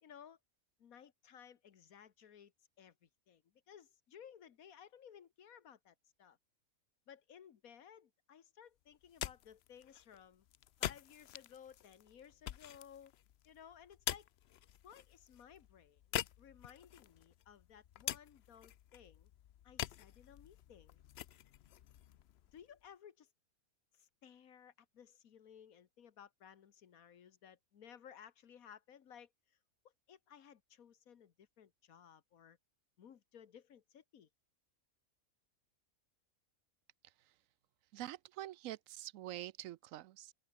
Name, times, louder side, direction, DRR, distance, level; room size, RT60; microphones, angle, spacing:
voice 1, 0.0-0.4 0.8-2.5 2.8-6.4 7.1-10.4 10.8-13.1 13.4-14.3 14.8-19.3 19.6-21.0 22.5-23.3 23.9-29.3 30.1-32.6 33.0-34.3, left 8 dB, 90° left, 1.6 m, -58 dB
sound 1, 8.9-22.9, left 11 dB, 60° left, 0.7 m, -46 dB
voice 2, 37.0-37.3 37.9-40.3, right 14 dB, 75° right, 0.9 m, -46 dB
open air
omnidirectional pair, 1.4 m